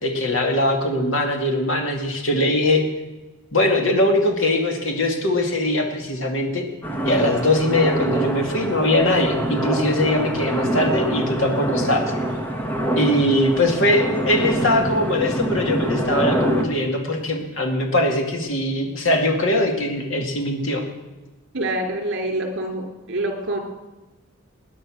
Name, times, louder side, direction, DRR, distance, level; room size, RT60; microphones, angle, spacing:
voice 1, 0.0-2.8 3.5-6.6 7.0-12.1 13.0-20.8, left 1 dB, 65° left, 3 dB, 2.4 m, -21 dB
sound 1, 6.8-16.6, right 1 dB, 10° left, 1.5 m, -25 dB
voice 2, 21.5-23.6, right 1 dB, 55° right, 3 dB, 3.0 m, -26 dB
20.0 x 9.9 x 6.4 m, 1.1 s
head